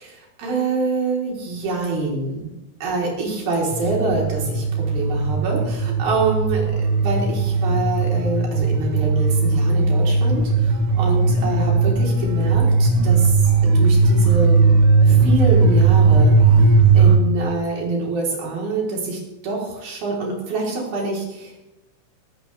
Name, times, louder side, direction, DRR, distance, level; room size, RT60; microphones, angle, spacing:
voice 1, 0.0-2.5 2.8-6.6 7.0-14.7 15.1-21.6, right 3 dB, 55° right, -2 dB, 5.6 m, -26 dB
sound 1, 3.7-17.2, right 4 dB, 85° right, 4.0 m, -17 dB
20.5 x 13.5 x 3.5 m, 0.98 s
omnidirectional pair, 5.4 m